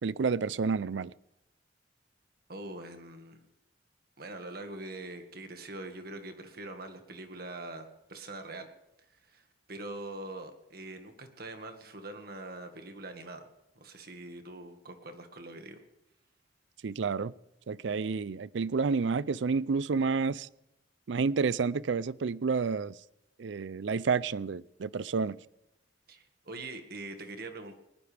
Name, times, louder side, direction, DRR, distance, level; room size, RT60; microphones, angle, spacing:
voice 1, 0.0-1.1 16.8-17.3 17.7-20.5 21.1-22.9 23.4-25.4, right 5 dB, 75° right, 20 dB, 0.5 m, -30 dB
voice 2, 2.5-3.4 4.2-8.7 9.3-13.5 13.8-15.8 26.1-27.8, right 2 dB, 55° right, 6 dB, 1.8 m, -43 dB
20.5 x 20.0 x 3.4 m, 0.88 s
head